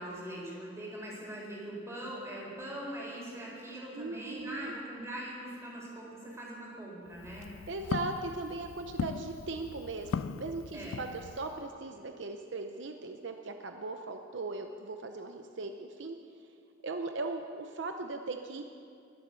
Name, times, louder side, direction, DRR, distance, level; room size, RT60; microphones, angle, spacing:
voice 1, 0.0-7.5 10.7-11.0, right 1 dB, 15° right, -4 dB, 4.1 m, -42 dB
voice 2, 3.9-4.7 7.7-16.2 16.8-18.6, right 3 dB, 65° right, 5 dB, 0.7 m, -38 dB
Walk footsteps, 7.1-11.6, left 6 dB, 90° left, 0.4 m, -39 dB
21.5 x 7.7 x 6.8 m, 2.3 s
head